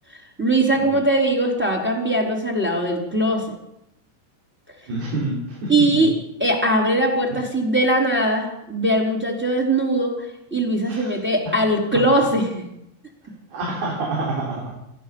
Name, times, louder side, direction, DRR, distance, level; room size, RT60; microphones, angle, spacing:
voice 1, 0.1-3.4 5.7-6.1 6.4-12.6, right 1 dB, ahead, 1 dB, 3.7 m, -21 dB
voice 2, 4.9-6.0 10.9-11.2 13.5-14.8, right 2 dB, 55° right, -3 dB, 5.5 m, -27 dB
28.0 x 15.0 x 7.2 m, 0.83 s
omnidirectional pair, 5.7 m